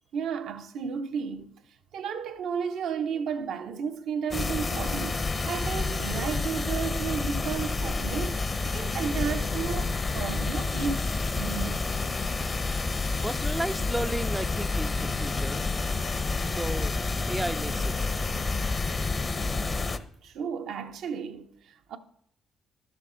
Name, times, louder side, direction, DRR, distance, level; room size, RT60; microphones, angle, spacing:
voice 1, 0.1-1.5 1.9-8.4 8.6-11.8 18.9-19.2 20.2-22.0, right 7 dB, 80° right, 0.7 m, -33 dB
sound 1, 4.3-20.0, left 3 dB, 35° left, 0.7 m, -29 dB
voice 2, 13.2-15.7 16.4-17.0 17.3-18.5, right 1 dB, 10° right, 0.3 m, -34 dB
11.5 x 7.3 x 3.8 m
cardioid pair, 90°, 0 cm